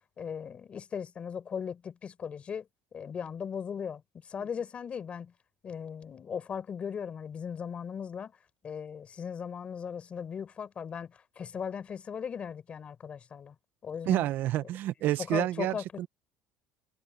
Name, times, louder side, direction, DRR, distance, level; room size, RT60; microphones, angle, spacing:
voice 1, 0.2-2.7 2.9-5.3 5.6-8.3 8.6-13.6 13.8-14.3 15.3-16.1, left 7 dB, 30° left, 4.4 m, -38 dB
voice 2, 14.1-16.1, right 14 dB, 50° right, 0.4 m, -29 dB
cardioid pair, 145°, 4 cm